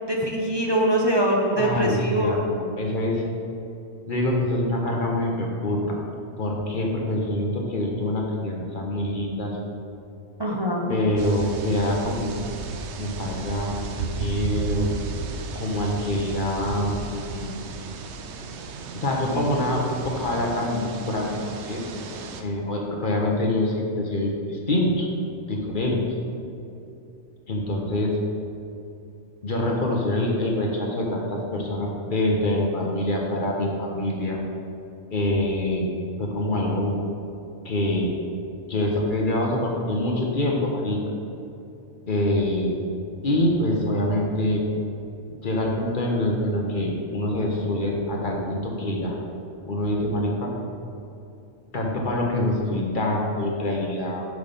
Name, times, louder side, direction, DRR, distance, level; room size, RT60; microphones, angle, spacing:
voice 1, 0.1-2.3 10.4-11.0, right 1 dB, 30° right, -3 dB, 0.5 m, -23 dB
voice 2, 1.6-3.2 4.1-6.0 6.4-9.6 10.9-12.5 13.0-14.9 15.5-17.6 18.9-22.0 22.4-25.1 25.5-26.0 27.5-28.2 29.4-34.4 35.1-35.9 36.2-36.9 37.6-38.1 38.7-41.0 42.1-42.7 43.2-44.6 45.4-49.2 49.7-50.5 51.7-54.3, left 1 dB, 45° left, -1 dB, 0.9 m, -25 dB
sound 1, 11.2-22.4, right 4 dB, 65° right, 0.8 m, -34 dB
6.3 x 5.5 x 5.2 m, 2.7 s
omnidirectional pair, 1.4 m